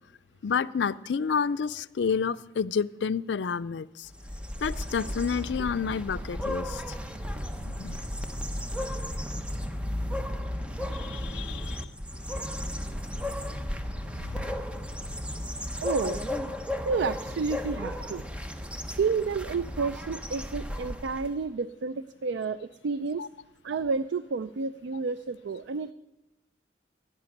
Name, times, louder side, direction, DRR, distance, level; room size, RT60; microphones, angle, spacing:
voice 1, 0.4-4.1 4.6-7.0 7.6-8.0 10.9-11.9 14.4-14.5 23.2-23.3, left 6 dB, 80° left, 15 dB, 0.4 m, -30 dB
sound 1, 4.1-21.4, left 1 dB, 5° right, 0.8 m, -34 dB
voice 2, 15.8-16.2 16.8-18.2 18.9-23.3 23.6-25.9, right 4 dB, 85° right, 15 dB, 0.4 m, -30 dB
15.5 x 6.8 x 9.8 m, 0.98 s
head